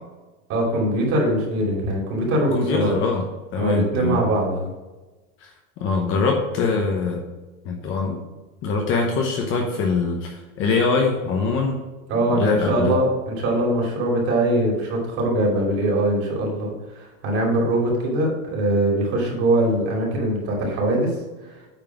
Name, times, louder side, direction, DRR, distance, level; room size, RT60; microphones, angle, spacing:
voice 1, 0.5-2.9 3.6-4.7 12.1-21.2 21.4-21.6, right 1 dB, 35° right, -2 dB, 2.7 m, -22 dB
voice 2, 2.5-3.2 3.5-4.2 5.4-5.5 5.8-7.2 7.6-8.2 8.6-11.8 12.3-13.0, left 4 dB, 30° left, 2 dB, 0.9 m, -23 dB
9.0 x 3.7 x 5.9 m, 1.2 s
supercardioid pair, 160°, 42 cm